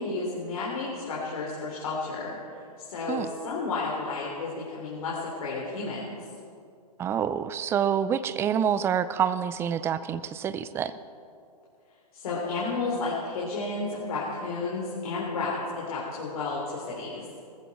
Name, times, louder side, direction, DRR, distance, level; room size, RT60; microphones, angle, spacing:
voice 1, 0.0-2.4 2.8-6.2 12.1-17.2, left 3 dB, 60° left, -5 dB, 3.8 m, -32 dB
voice 2, 7.0-10.9, right 8 dB, 10° right, 15 dB, 0.4 m, -27 dB
20.0 x 14.5 x 4.3 m, 2.4 s
hypercardioid pair, 130°, 21 cm